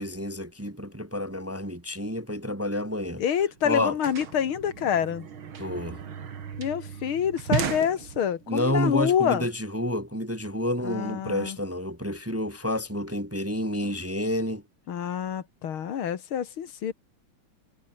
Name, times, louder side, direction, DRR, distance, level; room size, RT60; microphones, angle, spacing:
voice 1, 0.0-3.2 3.6-4.0 5.6-6.0 8.5-14.6, left 1 dB, 10° right, 1.4 m, -29 dB
sound 1, 3.1-3.2 3.4-8.6, right 7 dB, 75° right, 2.8 m, -35 dB
voice 2, 3.2-5.3 6.6-9.5 10.8-11.6 14.9-16.9, left 8 dB, 80° left, 2.4 m, -27 dB
omnidirectional pair, 2.3 m